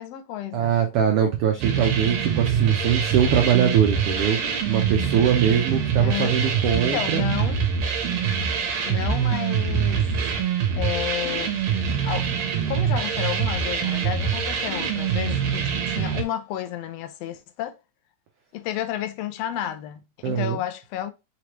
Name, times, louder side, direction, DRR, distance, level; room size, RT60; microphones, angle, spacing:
voice 1, 0.0-0.7 5.9-6.4 6.7-7.6 8.8-10.1 10.8-11.5 12.0-12.3 12.6-17.8 18.5-21.1, left 12 dB, 85° left, 1.4 m, -31 dB
voice 2, 0.5-4.4 4.7-7.2 20.2-20.6, right 8 dB, 90° right, 1.2 m, -22 dB
sound 1, 1.6-16.2, right 7 dB, 70° right, 1.9 m, -24 dB
4.9 x 3.1 x 2.9 m
omnidirectional pair, 3.4 m